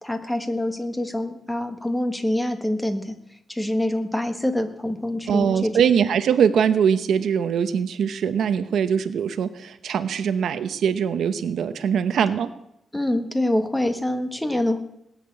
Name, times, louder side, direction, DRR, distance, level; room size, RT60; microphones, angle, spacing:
voice 1, 0.0-3.2 3.5-5.9 12.9-14.8, left 1 dB, 10° left, 7 dB, 1.4 m, -25 dB
voice 2, 5.3-12.5, right 7 dB, 75° right, 10 dB, 0.9 m, -22 dB
19.0 x 6.7 x 8.7 m, 0.82 s
cardioid pair, 125°, 0 cm